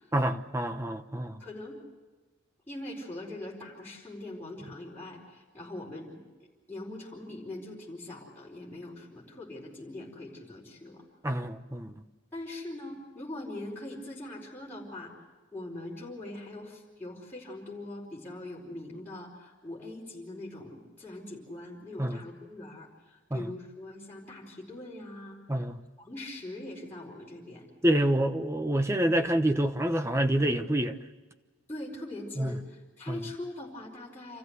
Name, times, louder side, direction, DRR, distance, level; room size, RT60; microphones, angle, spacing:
voice 1, 0.1-1.4 11.2-11.9 22.0-22.2 23.3-23.5 25.5-25.8 27.8-30.9 32.4-32.5 33.1-33.2, right 1 dB, 15° right, 0.9 m, -27 dB
voice 2, 1.4-1.8 2.7-6.2 6.7-11.0 12.3-15.2 15.5-25.4 26.0-27.7 31.7-34.4, left 1 dB, 10° left, 4.6 m, -42 dB
28.0 x 14.5 x 8.1 m
head